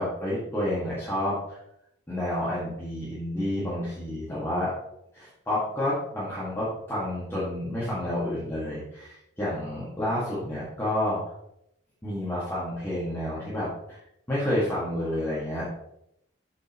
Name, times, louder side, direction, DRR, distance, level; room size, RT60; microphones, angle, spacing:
voice 1, 0.0-1.6 2.1-4.7 5.1-11.2 12.0-14.0 14.3-15.8, left 1 dB, 10° left, -10 dB, 1.9 m, -29 dB
7.7 x 6.4 x 3.0 m, 0.80 s
head